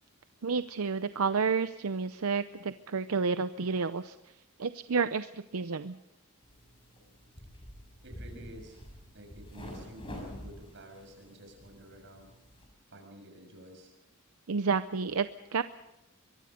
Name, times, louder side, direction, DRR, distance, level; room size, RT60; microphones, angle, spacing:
voice 1, 0.4-4.1 4.6-6.0 14.5-15.6, right 5 dB, 85° right, 12 dB, 0.6 m, -30 dB
sound 1, 6.4-12.7, equal, 25° left, 6.8 m, -47 dB
voice 2, 8.0-8.8 9.1-12.4 12.9-13.9, right 1 dB, 60° right, 3 dB, 6.6 m, -50 dB
23.0 x 22.5 x 5.2 m, 0.93 s
head